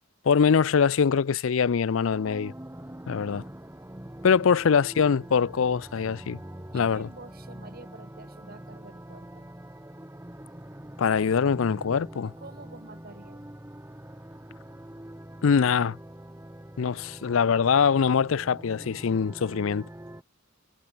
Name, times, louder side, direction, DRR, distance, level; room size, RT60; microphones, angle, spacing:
voice 1, 0.2-2.5 3.1-3.4 4.2-6.4 6.7-7.1 11.0-12.3 15.4-16.0 16.8-19.9, left 6 dB, 70° left, 0.5 m, -23 dB
sound 1, 2.1-20.2, right 1 dB, 10° right, 1.2 m, -44 dB
voice 2, 6.7-9.5 12.2-13.5, right 2 dB, 45° right, 2.8 m, -48 dB
head